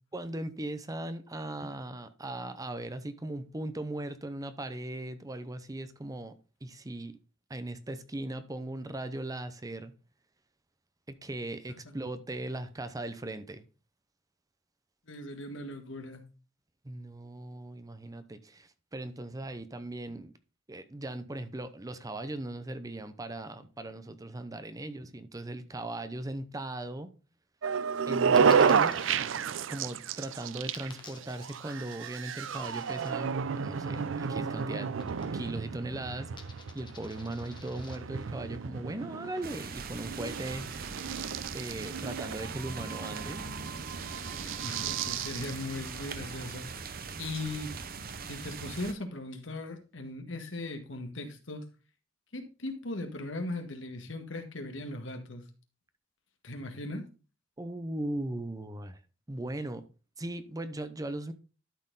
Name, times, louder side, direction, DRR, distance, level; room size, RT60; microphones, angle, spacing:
voice 1, 0.1-6.3 6.6-7.2 7.5-9.9 11.1-13.6 16.8-20.3 20.7-27.1 28.1-29.0 29.7-34.9 35.3-40.7 41.5-43.4 57.6-59.0 59.3-59.9 60.2-61.3, right 1 dB, 20° right, 0.6 m, -38 dB
voice 2, 15.1-16.2 44.4-46.7 47.2-47.7 48.3-51.6 52.3-55.4 56.4-57.1, left 2 dB, 75° left, 1.7 m, -38 dB
sound 1, 27.6-46.1, right 6 dB, 80° right, 0.5 m, -31 dB
Coin (dropping), 28.4-29.1 30.7-33.1 35.0-35.6 35.9-38.0, left 5 dB, 25° left, 1.3 m, -52 dB
sound 2, 39.4-48.9, right 4 dB, 50° right, 0.8 m, -41 dB
12.0 x 4.4 x 3.9 m
head